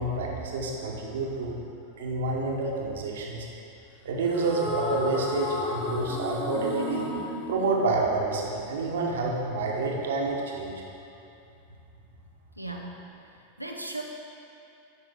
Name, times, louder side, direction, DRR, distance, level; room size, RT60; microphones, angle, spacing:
voice 1, 0.0-1.5 2.0-3.4 4.0-7.1 7.5-10.7, right 3 dB, 60° right, -1 dB, 1.4 m, -28 dB
sound 1, 4.3-8.7, left 2 dB, 15° left, 1.6 m, -33 dB
voice 2, 12.6-13.3 13.6-14.0, right 2 dB, 90° right, 0 dB, 0.8 m, -37 dB
13.0 x 5.8 x 3.8 m, 2.6 s
figure-of-eight pair, 90°, 0 cm